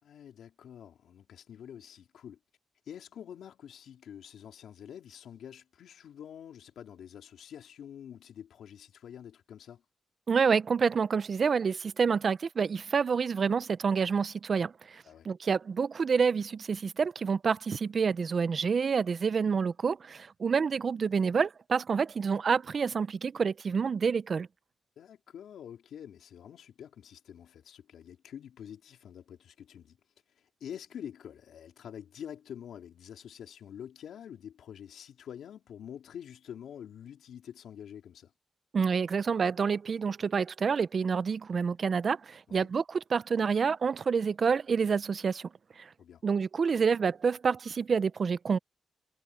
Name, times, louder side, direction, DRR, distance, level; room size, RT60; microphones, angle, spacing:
voice 1, 0.0-2.4 2.9-9.8 15.0-15.3 25.0-30.0 30.4-38.3 42.5-42.7 46.0-46.2, left 9 dB, 85° left, 3.9 m, -47 dB
voice 2, 10.3-24.5 38.7-45.5 45.8-45.9 46.2-48.6, right 5 dB, 55° right, 0.6 m, -28 dB
cardioid pair, 70°, 0 cm